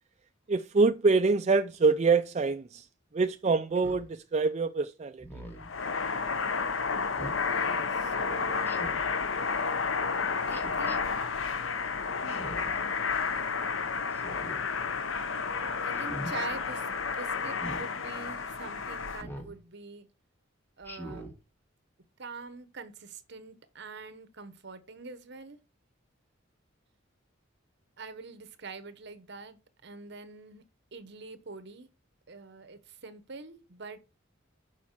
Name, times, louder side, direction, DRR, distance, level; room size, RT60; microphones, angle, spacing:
voice 1, 0.5-2.9 3.1-5.3, right 4 dB, 35° right, 0.4 m, -25 dB
Speech synthesizer, 3.7-4.1 5.2-5.7 7.1-7.4 8.6-9.1 10.5-11.0 12.3-12.8 14.1-14.6 15.9-16.3 17.5-17.8 19.2-19.5 20.8-21.3, right 1 dB, 10° left, 2.5 m, -42 dB
sound 1, 5.6-19.2, left 5 dB, 80° left, 0.9 m, -31 dB
voice 2, 7.5-8.8 10.5-11.0 12.2-12.6 15.8-16.9 17.1-20.1 20.8-21.3 22.2-25.6 28.0-30.6 30.9-31.9 32.3-34.0, right 4 dB, 60° right, 1.2 m, -45 dB
6.3 x 5.8 x 7.3 m
head